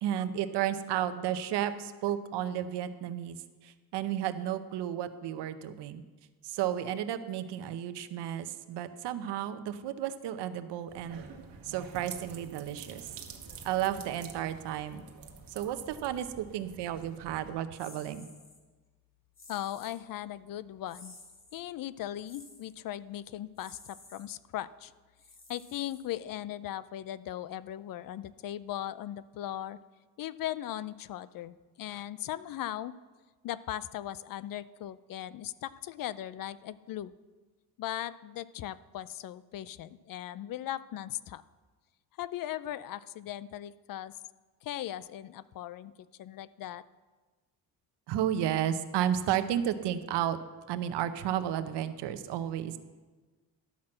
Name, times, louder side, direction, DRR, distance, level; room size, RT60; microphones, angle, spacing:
voice 1, 0.0-6.0 6.4-11.2 11.6-13.1 13.6-15.0 15.5-18.3 48.1-50.4 50.7-52.8, right 10 dB, 80° right, 11 dB, 0.9 m, -32 dB
sound 1, 10.9-17.5, right 5 dB, 55° right, 1.4 m, -48 dB
sound 2, 17.8-18.6 19.3-20.0 20.9-21.6 22.2-22.7 23.5-24.3 25.2-26.3, left 3 dB, 30° left, 1.9 m, -53 dB
voice 2, 19.5-21.1 21.5-24.9 25.5-29.8 30.2-32.9 33.4-37.1 37.8-41.4 42.2-44.2 44.6-45.9 46.2-46.8, left 12 dB, 55° left, 17 dB, 0.5 m, -38 dB
12.0 x 6.0 x 7.6 m, 1.3 s
cardioid pair, 120°, 41 cm